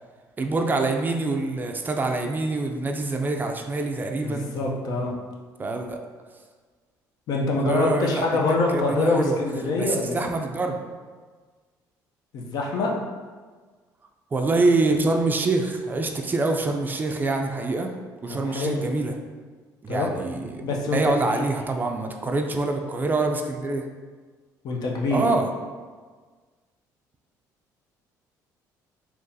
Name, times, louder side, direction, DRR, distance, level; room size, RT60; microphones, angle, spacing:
voice 1, 0.4-4.5 5.6-6.0 7.6-9.4 9.8-10.8 14.3-17.9 18.2-19.1 19.8-23.9 25.1-25.5, right 2 dB, 25° right, 3 dB, 0.3 m, -25 dB
voice 2, 4.2-5.1 7.3-10.2 12.3-12.9 18.3-18.8 19.9-20.1 20.6-21.1 21.4-21.5 24.6-25.2, left 3 dB, 65° left, -1 dB, 0.6 m, -25 dB
3.7 x 2.8 x 2.7 m, 1.5 s
cardioid pair, 100°, 7 cm